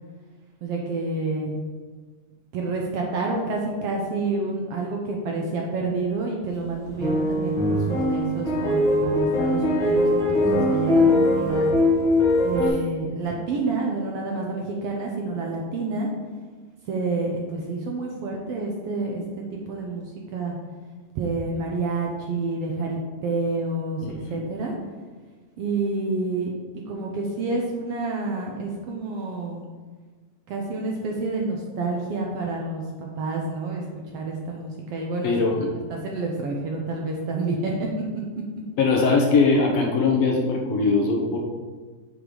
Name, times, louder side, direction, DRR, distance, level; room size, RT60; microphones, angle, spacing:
voice 1, 0.6-1.5 2.5-11.7 12.4-16.1 16.9-20.0 20.3-20.6 21.1-24.0 24.3-24.7 25.6-26.5 26.9-29.6 30.5-35.3 35.6-38.2, right 3 dB, 70° right, -1 dB, 1.5 m, -28 dB
sound 1, 6.9-12.7, left 1 dB, 5° left, 0.5 m, -21 dB
voice 2, 35.2-35.7 38.8-41.4, left 4 dB, 70° left, 0 dB, 1.9 m, -20 dB
7.9 x 3.8 x 5.0 m, 1.4 s
omnidirectional pair, 3.3 m